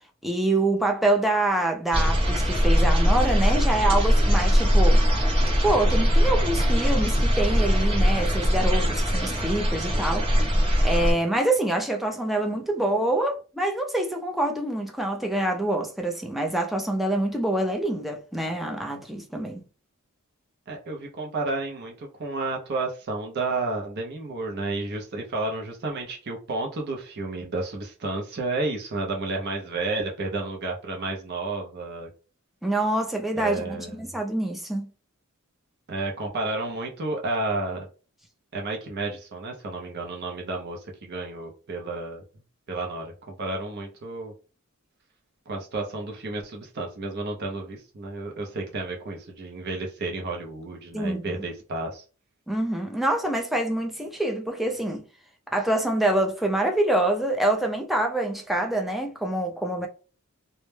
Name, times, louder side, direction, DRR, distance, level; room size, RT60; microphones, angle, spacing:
voice 1, 0.2-5.0 5.6-10.3 10.8-19.6 32.6-34.9 50.9-51.4 52.5-55.0 55.5-59.9, right 1 dB, ahead, 0.4 m, -26 dB
sound 1, 1.9-11.1, equal, 25° right, 0.8 m, -21 dB
voice 2, 20.7-32.1 33.4-34.0 35.9-37.9 38.5-42.2 42.7-44.3 45.5-52.0, right 2 dB, 50° right, 0.5 m, -31 dB
2.1 x 2.1 x 3.1 m
head